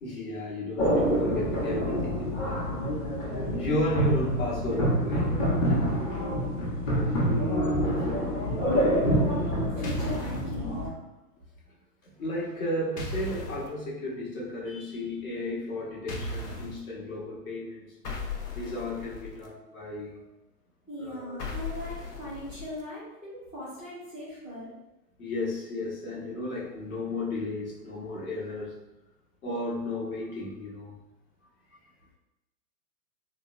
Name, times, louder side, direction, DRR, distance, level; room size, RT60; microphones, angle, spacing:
voice 1, 0.0-2.7 3.6-5.4 5.7-6.0 12.0-17.9 18.5-20.3 21.0-21.4 25.2-28.8 29.4-31.0, left 1 dB, 60° left, -4 dB, 1.3 m, -33 dB
sound 1, 0.8-10.9, equal, 40° left, 1.1 m, -27 dB
voice 2, 7.9-10.8 20.9-24.7, equal, 10° left, -8 dB, 0.3 m, -39 dB
sound 2, 9.8-10.5 13.0-13.7 16.1-16.8 18.0-19.5 21.4-22.8, left 2 dB, 85° left, 0.8 m, -36 dB
3.9 x 2.1 x 2.6 m, 0.96 s
figure-of-eight pair, 110°, 47 cm